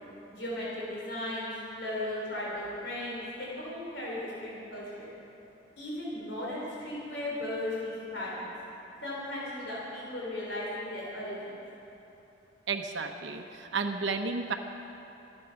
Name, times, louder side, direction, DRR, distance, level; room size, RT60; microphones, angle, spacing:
voice 1, 0.3-5.1 5.8-8.5 9.0-11.5, left 1 dB, 80° left, -5 dB, 3.7 m, -36 dB
voice 2, 12.7-14.5, right 4 dB, 80° right, 5 dB, 0.9 m, -32 dB
25.0 x 9.1 x 5.8 m, 3.0 s
head